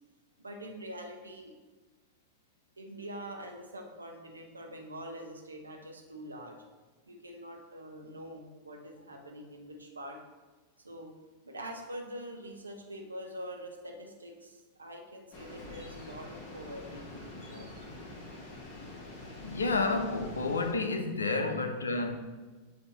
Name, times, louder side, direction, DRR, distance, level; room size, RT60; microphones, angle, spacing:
voice 1, 0.4-1.5 2.8-6.6 7.1-10.2 10.8-11.1 11.4-17.9 21.4-21.7, equal, 80° right, 0.9 m, -44 dB
sound 1, 15.3-20.7, left 2 dB, 40° left, 1.3 m, -45 dB
voice 2, 19.4-22.2, left 3 dB, 75° left, 0.6 m, -30 dB
7.8 x 2.8 x 5.1 m
figure-of-eight pair, 90°, 0 cm